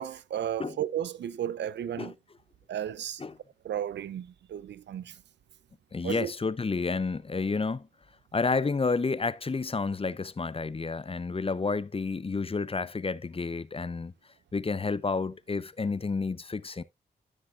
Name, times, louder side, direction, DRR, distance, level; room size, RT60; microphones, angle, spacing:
voice 1, 0.0-2.1 2.7-3.2 3.6-5.2 6.0-6.3, right 10 dB, 75° right, 0.5 m, -34 dB
voice 2, 5.9-7.9 8.3-14.1 14.5-16.8, left 4 dB, 30° left, 0.6 m, -30 dB
13.5 x 6.4 x 2.3 m
cardioid pair, 45°, 18 cm